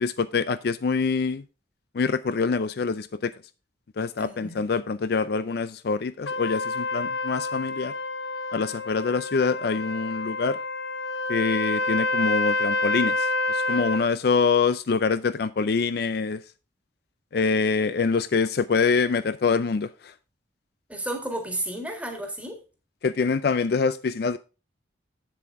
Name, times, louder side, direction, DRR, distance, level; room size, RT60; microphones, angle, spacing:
voice 1, 0.0-1.4 1.9-3.3 4.0-7.9 8.5-10.6 11.3-16.4 17.3-20.1 23.0-24.4, left 5 dB, 55° left, 0.4 m, -25 dB
voice 2, 4.2-4.6 20.9-22.6, right 1 dB, 5° right, 1.7 m, -32 dB
Trumpet, 6.3-14.1, left 2 dB, 75° left, 0.9 m, -28 dB
7.7 x 7.6 x 3.6 m
head